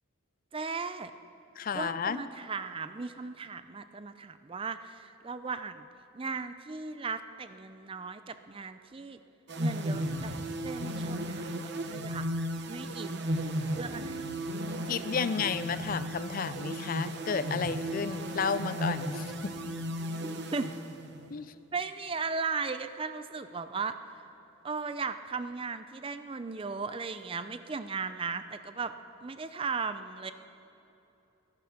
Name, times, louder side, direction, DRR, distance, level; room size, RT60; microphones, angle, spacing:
voice 1, 0.5-1.1 1.7-5.9 6.1-9.2 9.6-10.4 10.6-12.2 12.7-13.3 13.7-14.3 20.2-20.7 21.7-24.1 24.6-28.9 29.2-30.3, right 4 dB, 25° right, 11 dB, 0.4 m, -37 dB
voice 2, 1.6-2.2 14.9-19.5 21.3-21.5, left 6 dB, 40° left, 14 dB, 0.4 m, -32 dB
sound 1, 9.5-21.4, right 1 dB, 55° right, 0.9 m, -35 dB
22.0 x 10.5 x 5.9 m, 3.0 s
head